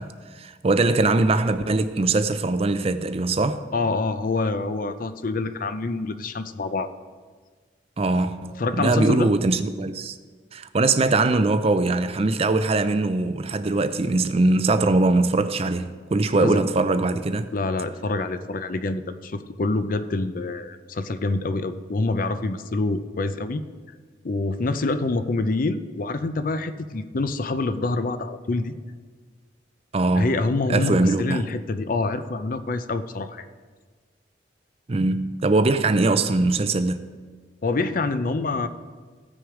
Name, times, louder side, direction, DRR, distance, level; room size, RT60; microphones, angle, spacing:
voice 1, 0.0-3.6 8.0-10.2 10.5-17.5 29.9-30.4 30.7-31.5 34.9-37.1, right 2 dB, 30° right, 0.4 m, -22 dB
voice 2, 3.7-6.9 8.6-9.3 16.3-16.6 17.5-23.6 24.2-28.7 30.2-33.4 37.6-38.7, left 3 dB, 45° left, 0.5 m, -26 dB
15.5 x 6.2 x 4.9 m
head